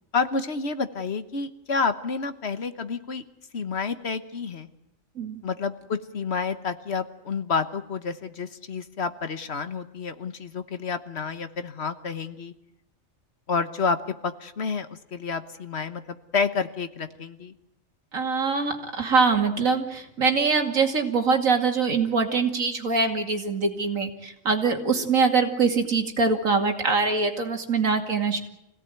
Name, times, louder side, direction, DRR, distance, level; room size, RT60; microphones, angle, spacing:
voice 1, 0.1-3.2 3.5-4.7 5.4-12.5 13.5-14.0 14.2-17.5, left 5 dB, 55° left, 10 dB, 1.4 m, -29 dB
voice 2, 18.1-28.4, right 4 dB, 80° right, 4 dB, 2.8 m, -23 dB
25.5 x 17.0 x 9.2 m, 0.82 s
omnidirectional pair, 1.4 m